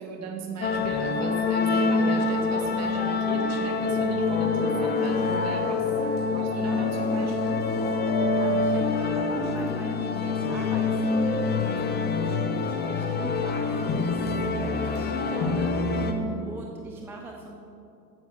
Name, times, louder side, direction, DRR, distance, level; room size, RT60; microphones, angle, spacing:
voice 1, 0.0-5.9 6.3-7.7 16.1-16.5, right 4 dB, 30° right, 2 dB, 1.6 m, -37 dB
sound 1, 0.6-16.1, left 4 dB, 20° left, 0.7 m, -26 dB
voice 2, 8.4-15.7 16.5-17.7, right 2 dB, 5° right, 0 dB, 0.4 m, -42 dB
8.9 x 7.1 x 6.1 m, 2.7 s
hypercardioid pair, 95°, 49 cm